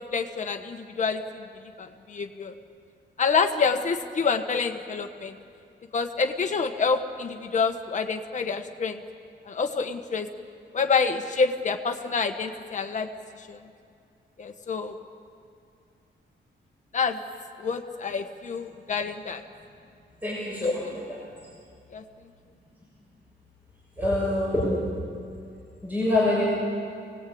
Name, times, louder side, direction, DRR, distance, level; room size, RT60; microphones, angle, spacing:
voice 1, 0.1-1.4 1.8-2.5 3.2-5.3 5.9-9.0 9.5-10.3 10.7-13.1 13.4-13.6 14.4-14.9 16.9-17.2 17.6-19.4 20.6-21.0 21.9-22.0, left 5 dB, 35° left, 5 dB, 1.5 m, -27 dB
voice 2, 20.2-20.8 24.0-24.8 25.8-26.4, left 1 dB, 10° right, -7 dB, 6.3 m, -25 dB
28.5 x 19.5 x 8.8 m, 2.3 s
wide cardioid pair, 180°, 20 cm